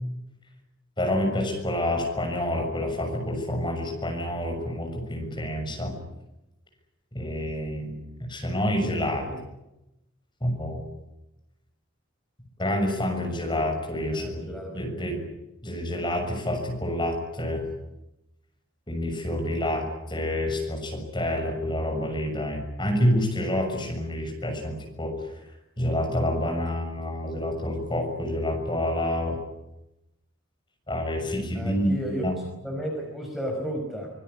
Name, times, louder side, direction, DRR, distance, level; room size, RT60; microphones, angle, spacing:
voice 1, 1.0-6.0 7.1-9.3 10.4-10.9 12.6-15.2 15.6-17.6 18.9-25.2 25.8-29.4 30.9-32.4, left 1 dB, 20° left, 3 dB, 6.7 m, -28 dB
voice 2, 9.1-9.4 14.1-14.8 31.5-32.3 32.6-34.1, equal, ahead, 0 dB, 5.0 m, -33 dB
25.0 x 22.0 x 9.8 m, 0.90 s
head